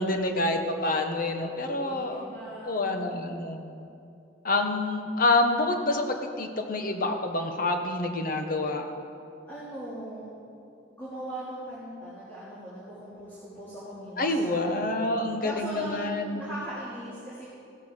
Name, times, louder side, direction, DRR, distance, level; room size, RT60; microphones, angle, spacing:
voice 1, 0.0-2.2 2.6-3.6 4.4-8.9 14.2-16.4, left 2 dB, 50° left, 5 dB, 1.2 m, -27 dB
voice 2, 1.1-3.2 9.5-10.3 11.0-15.1 15.4-17.5, equal, 10° left, -10 dB, 2.8 m, -40 dB
16.0 x 12.5 x 4.5 m, 2.6 s
head